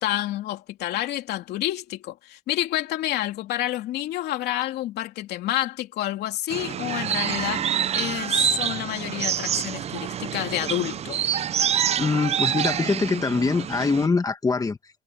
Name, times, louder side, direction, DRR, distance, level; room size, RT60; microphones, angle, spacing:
voice 1, 0.0-7.7 7.9-11.2, left 14 dB, 75° left, 3.0 m, -29 dB
sound 1, 6.5-14.1, right 9 dB, 40° right, 0.5 m, -27 dB
voice 2, 12.0-14.8, left 4 dB, 20° left, 1.5 m, -23 dB
cardioid pair, 110°, 17 cm